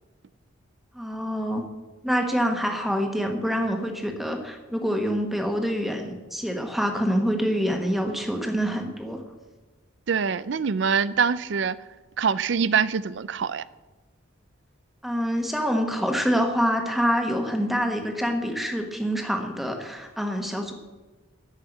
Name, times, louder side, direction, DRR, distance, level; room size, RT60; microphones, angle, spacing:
voice 1, 0.9-1.7 2.0-9.2 15.0-20.7, equal, ahead, 3 dB, 1.3 m, -26 dB
voice 2, 10.1-11.8 12.2-13.6, right 6 dB, 60° right, 18 dB, 0.4 m, -24 dB
14.0 x 5.7 x 9.1 m, 1.2 s
head